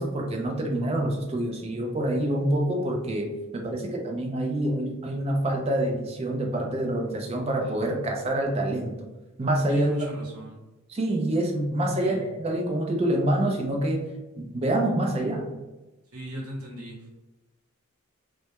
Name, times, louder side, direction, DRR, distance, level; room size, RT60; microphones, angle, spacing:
voice 1, 0.0-9.0 9.4-9.9 10.9-14.0 14.4-15.5, right 1 dB, 25° right, 1 dB, 0.3 m, -26 dB
voice 2, 9.7-10.6 12.0-12.3 16.1-17.1, equal, 85° right, -1 dB, 0.7 m, -38 dB
2.1 x 2.0 x 2.8 m, 1.1 s
head